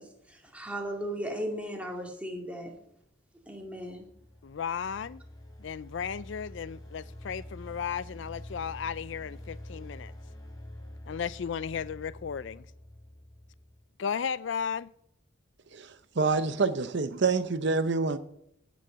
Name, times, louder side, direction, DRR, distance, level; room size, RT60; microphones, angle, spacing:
voice 1, 0.0-2.7 3.5-4.1, equal, 5° right, 2.2 m, -36 dB
sound 1, 3.7-13.9, left 1 dB, 20° left, 3.4 m, -46 dB
voice 2, 4.4-5.2 5.6-10.1 11.1-12.7 14.0-14.9, left 7 dB, 65° left, 0.4 m, -35 dB
voice 3, 16.2-18.2, right 4 dB, 60° right, 0.7 m, -26 dB
16.0 x 6.3 x 7.9 m
head